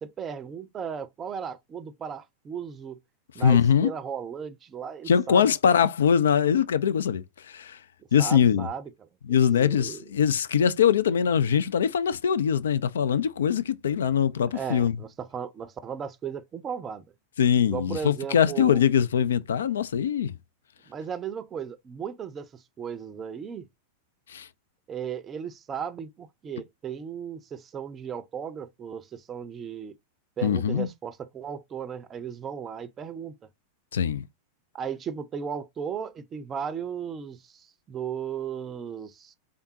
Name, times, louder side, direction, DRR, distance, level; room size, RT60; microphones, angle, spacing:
voice 1, 0.0-3.0 3.3-5.5 8.2-9.1 9.5-10.0 14.5-17.0 17.6-18.8 20.9-23.7 24.9-29.9 30.4-33.3 34.7-39.3, right 7 dB, 25° right, 0.5 m, -36 dB
voice 2, 3.4-3.9 5.1-7.8 8.1-8.7 9.3-14.9 17.4-20.4 24.3-24.5 30.4-30.9 33.9-34.2, left 8 dB, 65° left, 0.3 m, -22 dB
3.7 x 3.5 x 2.7 m
figure-of-eight pair, 90°, 0 cm